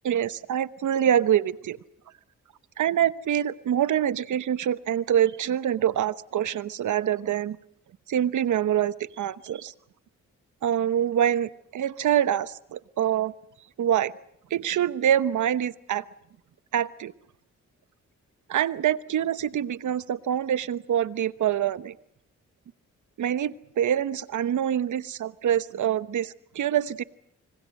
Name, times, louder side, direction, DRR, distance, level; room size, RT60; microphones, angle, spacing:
voice 1, 0.0-1.8 2.8-7.6 8.1-9.7 10.6-13.3 13.8-14.1 14.5-16.1 16.7-17.1 18.5-21.9 23.2-27.0, right 10 dB, 75° right, 15 dB, 1.0 m, -25 dB
26.0 x 25.0 x 6.5 m, 0.73 s
cardioid pair, 60°, 30 cm